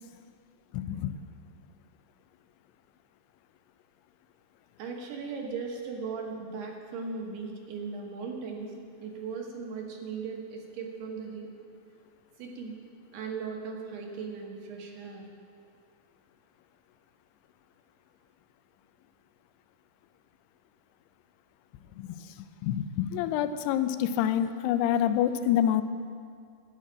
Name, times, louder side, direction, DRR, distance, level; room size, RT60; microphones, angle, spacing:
voice 1, 0.7-1.1 22.0-22.1 22.6-25.8, left 10 dB, 90° left, 11 dB, 2.6 m, -27 dB
voice 2, 4.8-8.7 9.0-11.5 12.4-12.7 13.1-15.2, right 5 dB, 85° right, 0 dB, 3.4 m, -38 dB
11.0 x 6.5 x 8.8 m, 2.3 s
omnidirectional pair, 4.6 m